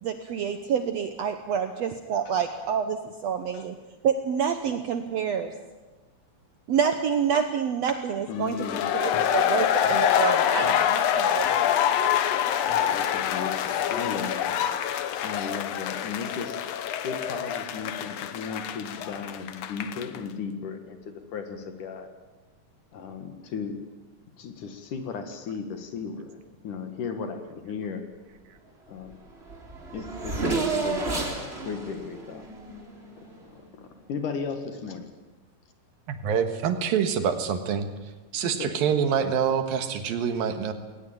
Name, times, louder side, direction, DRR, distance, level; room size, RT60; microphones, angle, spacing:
voice 1, 0.0-3.7 4.0-5.5 6.7-8.6 8.9-12.2, right 7 dB, 90° right, 8 dB, 1.4 m, -28 dB
voice 2, 8.3-8.9 12.9-14.6 15.2-16.6 17.0-22.1 22.9-23.8 24.4-28.1 28.9-29.2 29.9-31.3 31.6-32.4 33.4-35.1 38.4-38.8, left 5 dB, 60° left, 7 dB, 3.0 m, -35 dB
sound 1, 8.5-20.2, left 10 dB, 90° left, 1.4 m, -26 dB
Race car auto racing / Accelerating revving vroom, 29.1-29.2 29.4-33.4, right 3 dB, 15° right, 3.2 m, -31 dB
voice 3, 36.1-37.9 38.3-40.7, right 7 dB, 70° right, 8 dB, 3.0 m, -26 dB
20.5 x 19.0 x 9.0 m, 1.2 s
omnidirectional pair, 4.5 m